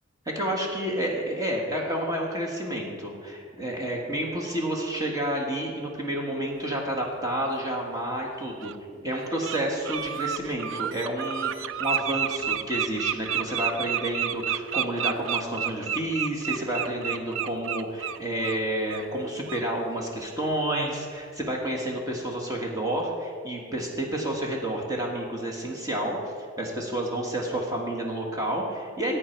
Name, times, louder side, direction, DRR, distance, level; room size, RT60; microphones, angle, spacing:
voice 1, 0.2-8.7 9.0-29.2, right 1 dB, 15° right, -1 dB, 1.6 m, -30 dB
Bird, 7.8-7.9 8.6-8.8 9.2-9.6 9.8-18.6 18.9-19.1 19.5-19.6, right 9 dB, 65° right, 0.4 m, -30 dB
15.5 x 8.6 x 4.5 m, 2.1 s
head